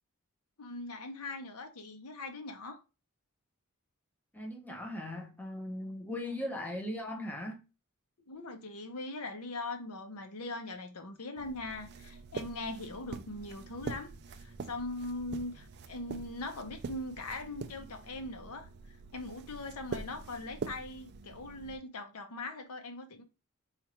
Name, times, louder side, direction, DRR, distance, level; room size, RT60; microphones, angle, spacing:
voice 1, 0.6-2.8 6.1-6.4 8.3-23.2, left 2 dB, 80° left, 0.8 m, -41 dB
voice 2, 4.3-7.6, left 1 dB, 5° left, 0.7 m, -38 dB
sound 1, 11.4-21.8, right 4 dB, 50° right, 0.3 m, -44 dB
4.4 x 2.4 x 2.9 m
head